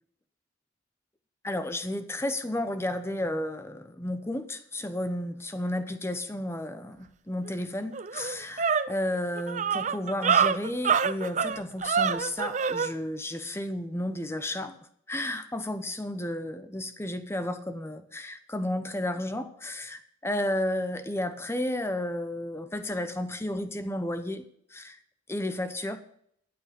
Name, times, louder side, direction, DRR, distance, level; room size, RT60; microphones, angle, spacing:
voice 1, 1.4-14.8 15.1-24.5 24.7-25.0 25.3-26.0, left 1 dB, 15° left, 10 dB, 0.8 m, -32 dB
sound 1, 7.5-7.6 7.9-12.9, right 6 dB, 40° right, 0.5 m, -26 dB
13.0 x 8.7 x 5.2 m, 0.69 s
head